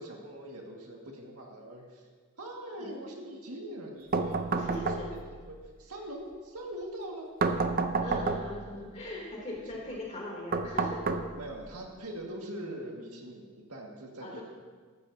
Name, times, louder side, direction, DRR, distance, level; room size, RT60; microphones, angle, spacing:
voice 1, 0.0-2.0 2.4-5.1 5.4-7.3 9.5-10.3 11.4-14.4, right 1 dB, 80° right, 0 dB, 1.9 m, -43 dB
sound 1, 4.1-5.4 7.4-8.7 10.5-11.7, right 4 dB, 40° right, 0.6 m, -30 dB
voice 2, 4.5-5.1 7.6-7.7 8.0-11.2 14.2-14.4, left 1 dB, 30° left, -3 dB, 3.0 m, -40 dB
15.0 x 12.5 x 2.8 m, 1.5 s
head